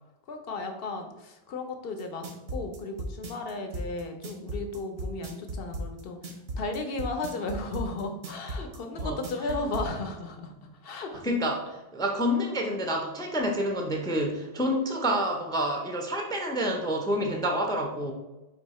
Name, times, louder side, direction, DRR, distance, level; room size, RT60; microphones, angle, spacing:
voice 1, 0.3-2.2 2.5-6.2 6.6-11.2, left 3 dB, 70° left, 5 dB, 0.8 m, -35 dB
sound 1, 2.0-9.9, right 1 dB, 75° right, 1.0 m, -35 dB
voice 2, 11.1-18.1, equal, 5° left, 2 dB, 0.3 m, -28 dB
4.4 x 2.7 x 4.1 m, 1.0 s
omnidirectional pair, 1.0 m